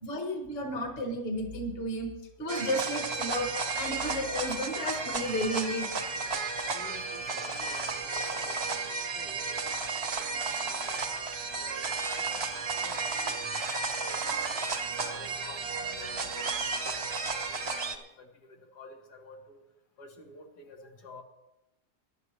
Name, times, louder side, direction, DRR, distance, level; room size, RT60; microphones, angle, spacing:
voice 1, 0.0-2.1 2.4-5.9 14.3-14.4 15.5-15.6 16.3-16.4, equal, 35° left, 3 dB, 1.7 m, -33 dB
sound 1, 2.5-18.0, right 4 dB, 45° right, 1.1 m, -33 dB
voice 2, 5.3-5.7 6.7-14.5 14.9-16.3 16.8-19.6 20.0-21.2, left 2 dB, 70° left, 1 dB, 2.1 m, -51 dB
21.0 x 11.0 x 3.2 m, 0.89 s
omnidirectional pair, 1.8 m